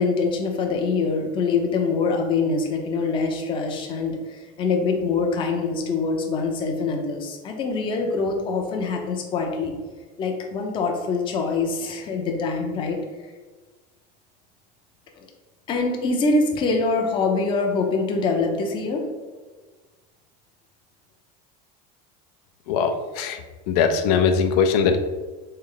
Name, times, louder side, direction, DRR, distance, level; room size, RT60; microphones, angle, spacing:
voice 1, 0.0-9.7 10.2-13.0 15.2-15.3 15.7-19.0, left 4 dB, 25° left, 2 dB, 0.5 m, -24 dB
voice 2, 22.7-25.0, left 6 dB, 80° left, 7 dB, 0.5 m, -21 dB
3.5 x 3.3 x 3.8 m, 1.3 s
cardioid pair, 165°, 20 cm